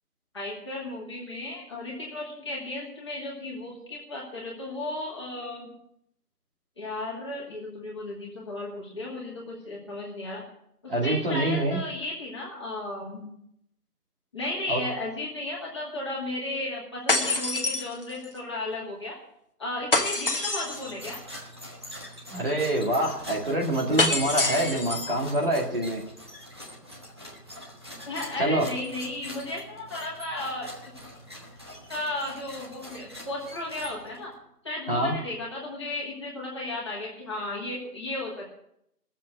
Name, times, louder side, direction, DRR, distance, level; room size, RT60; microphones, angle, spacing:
voice 1, 0.3-5.7 6.8-10.4 10.8-13.3 14.3-19.2 19.6-21.2 28.1-30.9 31.9-34.3 34.6-38.3, left 2 dB, 20° left, -5 dB, 2.4 m, -34 dB
voice 2, 10.9-11.8 14.7-14.8 22.3-26.0 28.4-28.7 34.9-35.1, right 1 dB, 35° right, -1 dB, 2.3 m, -26 dB
sound 1, 17.1-18.4 19.9-20.9 24.0-25.2, left 2 dB, 35° left, 1.3 m, -26 dB
sound 2, 20.4-34.3, equal, 15° right, 1.3 m, -44 dB
16.5 x 7.6 x 7.7 m, 0.74 s
figure-of-eight pair, 165°, 47 cm